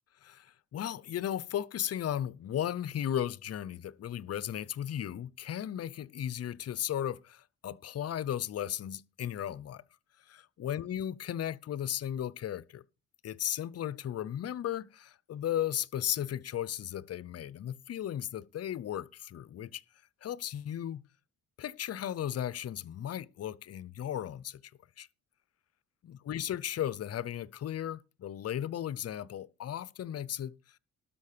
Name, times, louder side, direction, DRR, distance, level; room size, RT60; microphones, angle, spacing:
voice 1, 0.2-9.8 10.3-12.8 13.2-19.8 20.2-21.0 21.6-24.6 25.0-25.1 26.0-30.6, left 10 dB, 55° left, 0.7 m, -35 dB
12.5 x 5.8 x 6.7 m
cardioid pair, 90°, 30 cm